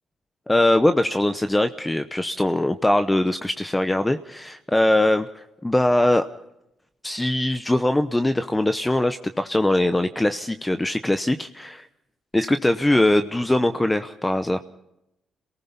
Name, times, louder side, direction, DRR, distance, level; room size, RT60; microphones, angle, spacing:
voice 1, 0.5-6.3 7.0-11.9 12.3-14.6, left 1 dB, 10° left, 9 dB, 0.9 m, -21 dB
27.0 x 19.0 x 5.5 m, 0.87 s
cardioid pair, 90°, 0 cm